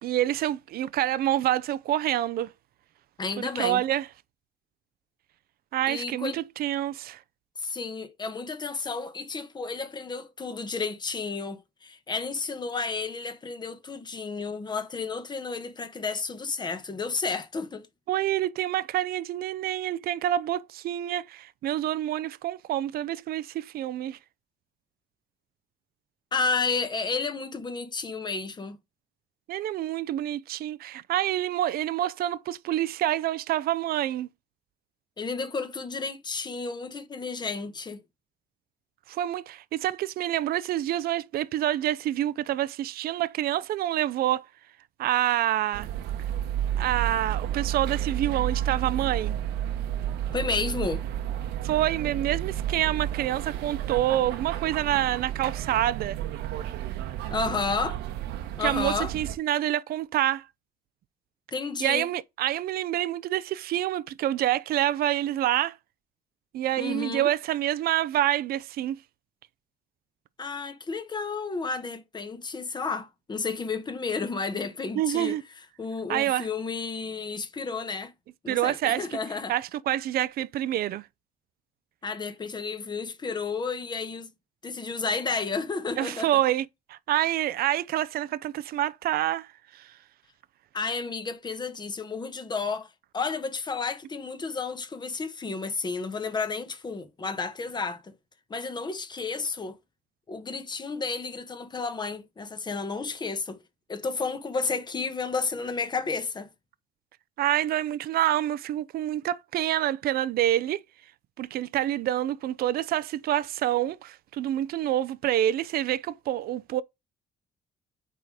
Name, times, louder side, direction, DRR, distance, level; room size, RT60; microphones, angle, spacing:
voice 1, 0.0-2.5 3.4-4.1 5.7-7.2 18.1-24.2 29.5-34.3 39.1-44.5 45.0-45.9 46.8-49.4 51.6-56.2 58.6-60.5 61.8-65.8 66.5-69.0 75.0-75.4 76.1-76.5 78.5-79.1 79.5-81.0 86.0-89.5 89.7-89.9 107.4-110.8 111.4-116.8, right 13 dB, 65° right, 0.6 m, -27 dB
voice 2, 3.2-3.8 5.9-6.4 7.6-17.9 26.3-28.8 35.2-38.0 50.3-51.0 57.3-58.0 58.6-59.1 61.5-62.1 66.8-67.3 70.4-75.4 75.8-78.1 78.4-79.5 82.0-84.3 84.6-86.4 90.7-92.9 93.1-98.1 98.5-99.8 100.3-103.6 103.9-106.5, left 4 dB, 25° left, 1.3 m, -32 dB
sound 1, 45.7-59.4, right 11 dB, 85° right, 1.2 m, -31 dB
9.0 x 3.8 x 4.9 m
cardioid pair, 110°, 17 cm